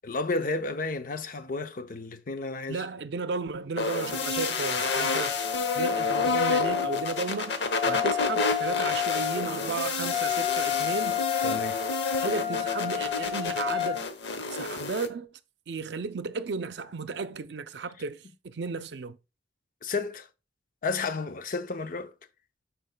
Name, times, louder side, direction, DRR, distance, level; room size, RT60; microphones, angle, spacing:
voice 1, 0.0-2.8 11.4-11.8 19.8-20.3 20.8-22.1, left 3 dB, 50° left, 0.6 m, -32 dB
voice 2, 2.7-11.2 12.2-14.0 14.5-15.4 15.7-19.2, right 4 dB, 65° right, 0.5 m, -34 dB
sound 1, 3.8-15.1, left 3 dB, 75° left, 0.9 m, -30 dB
Wind instrument woodwind instrument, 4.0-14.0, left 12 dB, 35° left, 1.6 m, -31 dB
12.0 x 4.6 x 2.2 m
head